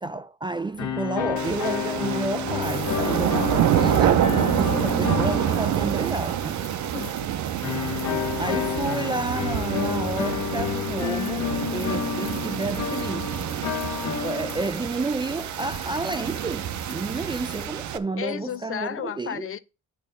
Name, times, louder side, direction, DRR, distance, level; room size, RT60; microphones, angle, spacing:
voice 1, 0.0-6.6 8.4-13.3 14.0-19.5, right 3 dB, 15° right, 0.4 m, -30 dB
sound 1, 0.8-6.6 7.6-15.0, left 8 dB, 70° left, 1.1 m, -30 dB
sound 2, 1.4-18.0, right 11 dB, 70° right, 0.7 m, -27 dB
sound 3, 2.6-17.7, left 3 dB, 30° left, 1.4 m, -44 dB
voice 2, 6.9-7.3 18.2-19.6, left 9 dB, 45° left, 0.6 m, -33 dB
8.7 x 3.2 x 6.6 m
cardioid pair, 90°, 30 cm